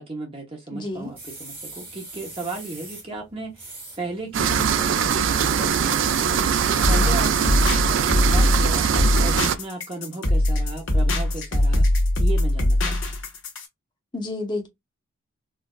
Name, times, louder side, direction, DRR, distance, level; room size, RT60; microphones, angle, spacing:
voice 1, 0.0-11.9 12.2-13.1, right 2 dB, 25° right, 0.9 m, -35 dB
voice 2, 0.7-1.1 14.1-14.7, left 2 dB, 20° left, 0.9 m, -30 dB
sound 1, 0.9-9.0, right 2 dB, 10° right, 1.2 m, -42 dB
sound 2, 4.3-9.5, right 7 dB, 70° right, 0.4 m, -22 dB
sound 3, 6.8-13.7, left 1 dB, 75° left, 1.3 m, -21 dB
4.5 x 2.5 x 2.3 m
head